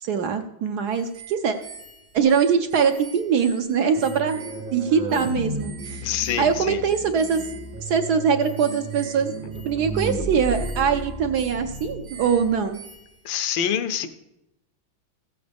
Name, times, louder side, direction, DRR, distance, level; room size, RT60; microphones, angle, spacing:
voice 1, 0.0-1.6 2.1-4.4 4.7-6.1 6.4-7.4 7.8-9.3 9.7-12.8, right 6 dB, 70° right, 6 dB, 1.1 m, -22 dB
sound 1, 0.9-13.3, right 5 dB, 85° right, 2.1 m, -45 dB
sound 2, 4.0-12.7, right 2 dB, 50° right, 0.6 m, -33 dB
voice 2, 6.0-6.8 13.2-14.1, left 9 dB, 75° left, 10 dB, 1.4 m, -26 dB
15.5 x 7.9 x 3.4 m, 0.87 s
omnidirectional pair, 2.2 m